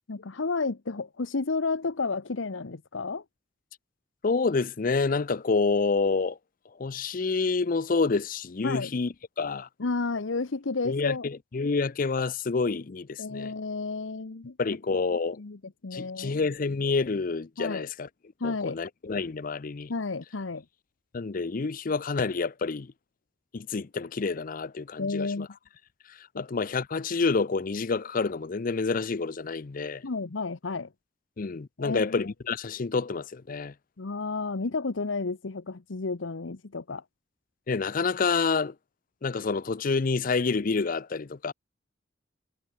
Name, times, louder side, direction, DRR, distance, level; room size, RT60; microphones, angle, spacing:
voice 1, 0.0-3.2 8.6-8.9 9.8-11.3 13.2-14.6 15.4-16.4 17.6-17.9 18.4-18.8 19.9-20.6 25.0-25.5 30.0-30.9 31.8-32.1 34.0-37.0, left 3 dB, 85° left, 0.9 m, -31 dB
voice 2, 4.2-6.4 6.8-9.7 10.8-13.5 14.6-15.4 15.9-18.1 18.4-19.9 21.1-22.9 23.5-25.5 26.1-30.0 31.4-33.7 37.7-38.7 39.2-41.5, left 4 dB, 45° left, 0.5 m, -28 dB
head